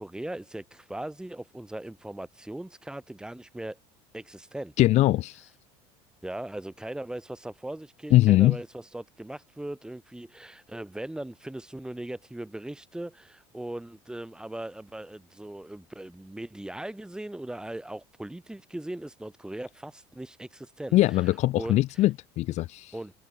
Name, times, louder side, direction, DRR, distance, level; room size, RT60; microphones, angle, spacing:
voice 1, 0.0-3.8 4.1-4.7 6.2-22.0 22.9-23.1, right 1 dB, 5° right, 7.4 m, -39 dB
voice 2, 4.8-5.5 8.1-8.6 20.9-22.9, left 16 dB, 55° left, 1.9 m, -21 dB
supercardioid pair, 115°, 14 cm